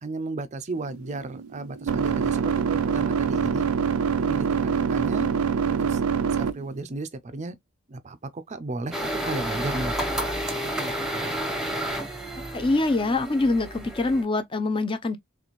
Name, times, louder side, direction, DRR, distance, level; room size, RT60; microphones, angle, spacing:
voice 1, 0.0-3.7 4.2-5.3 5.7-6.0 6.3-7.6 7.9-11.4, right 2 dB, 35° right, 0.4 m, -35 dB
sound 1, 0.8-6.8, right 6 dB, 90° right, 0.5 m, -25 dB
sound 2, 8.9-14.2, right 1 dB, ahead, 0.8 m, -30 dB
voice 2, 12.4-15.2, left 2 dB, 25° left, 0.5 m, -24 dB
4.1 x 3.2 x 3.0 m
head